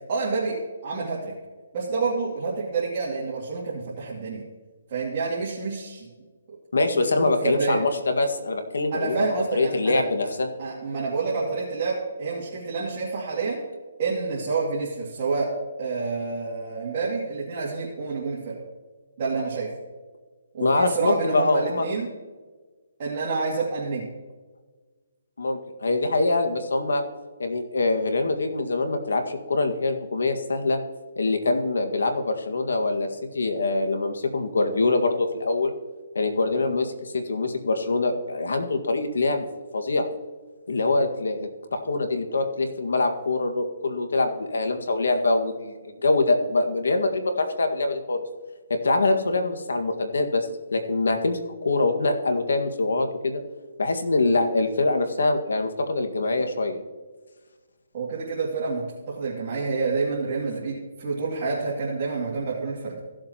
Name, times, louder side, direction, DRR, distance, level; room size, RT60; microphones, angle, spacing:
voice 1, 0.1-1.3 1.7-4.4 4.9-6.1 7.0-7.8 8.9-10.0 10.6-13.6 14.0-15.5 15.8-18.6 19.2-19.7 20.5-22.1 23.0-24.1 57.9-63.0, right 4 dB, 40° right, -6 dB, 2.3 m, -28 dB
voice 2, 6.7-10.5 20.6-21.8 25.4-27.0 27.4-30.8 31.1-33.1 33.3-35.7 36.1-40.1 40.7-48.2 48.7-53.4 53.8-56.8, left 2 dB, 85° left, 6 dB, 1.7 m, -24 dB
16.0 x 7.6 x 2.9 m, 1.3 s
hypercardioid pair, 160°, 0 cm